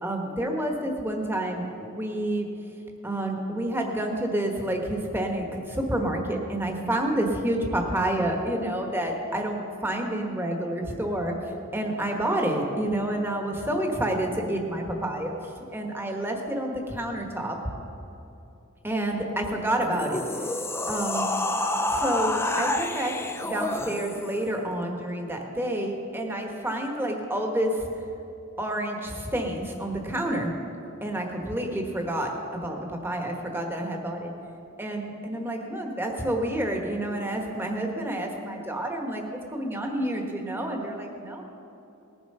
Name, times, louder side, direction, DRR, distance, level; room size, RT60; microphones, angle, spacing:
voice 1, 0.0-2.4 3.0-11.3 11.7-15.3 15.7-17.6 18.8-20.2 20.9-21.3 21.9-23.1 23.4-27.9 28.6-30.5 31.0-34.3 34.8-39.2 39.5-41.4, right 1 dB, 10° right, 2 dB, 1.3 m, -29 dB
sound 1, 19.8-24.4, left 2 dB, 10° left, 0.6 m, -28 dB
19.5 x 7.2 x 5.5 m, 2.8 s
head